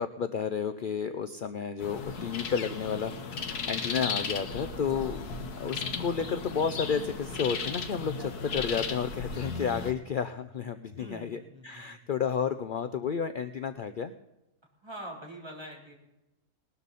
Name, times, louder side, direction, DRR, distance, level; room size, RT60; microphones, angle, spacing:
voice 1, 0.0-14.1, left 6 dB, 60° left, 9 dB, 0.5 m, -32 dB
sound 1, 1.8-9.9, left 5 dB, 85° left, 1.8 m, -36 dB
voice 2, 11.0-12.0 14.8-16.0, right 1 dB, 15° right, -2 dB, 3.5 m, -44 dB
19.5 x 13.0 x 4.1 m, 0.92 s
omnidirectional pair, 1.6 m